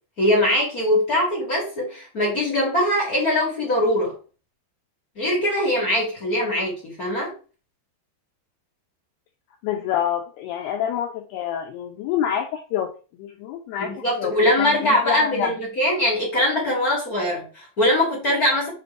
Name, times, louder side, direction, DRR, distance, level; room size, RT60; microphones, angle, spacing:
voice 1, 0.2-4.1 5.1-7.3 13.8-18.7, left 1 dB, 45° left, -4 dB, 1.1 m, -22 dB
voice 2, 9.6-12.9 13.2-15.6, left 8 dB, 90° left, 3 dB, 2.2 m, -27 dB
7.5 x 4.2 x 3.2 m, 0.36 s
omnidirectional pair, 5.4 m